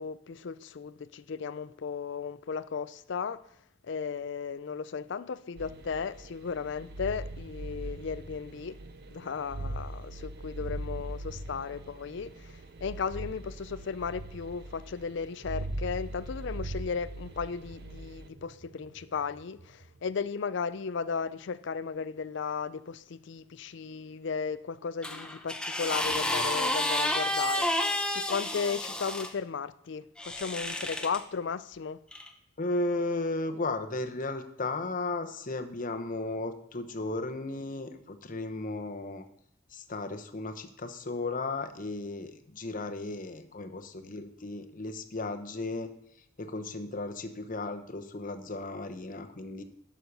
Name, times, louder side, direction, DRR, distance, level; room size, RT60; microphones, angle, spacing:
voice 1, 0.0-3.4 3.8-8.8 9.1-27.7 28.1-32.0, left 5 dB, 60° left, 0.4 m, -35 dB
sound 1, 5.6-19.8, right 1 dB, 50° right, 0.6 m, -41 dB
sound 2, 25.0-29.3 30.2-31.2 32.1-32.3, left 1 dB, 5° left, 0.7 m, -30 dB
voice 2, 32.6-39.2 39.7-45.9 46.4-49.6, left 2 dB, 40° left, 0.9 m, -35 dB
11.5 x 6.3 x 5.3 m
head